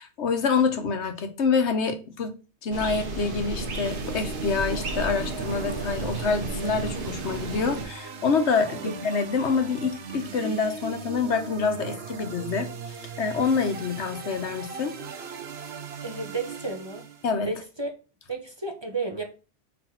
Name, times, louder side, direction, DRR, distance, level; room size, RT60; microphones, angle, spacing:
voice 1, 0.0-2.3 2.6-15.0 17.2-17.5, left 5 dB, 80° left, 1.3 m, -26 dB
sound 1, 2.7-7.9, right 3 dB, 50° right, 1.3 m, -33 dB
sound 2, 3.8-17.3, right 6 dB, 65° right, 1.1 m, -38 dB
voice 2, 16.0-17.1 17.4-17.9 18.3-19.2, right 3 dB, 25° right, 0.9 m, -32 dB
4.7 x 4.3 x 5.7 m
omnidirectional pair, 1.1 m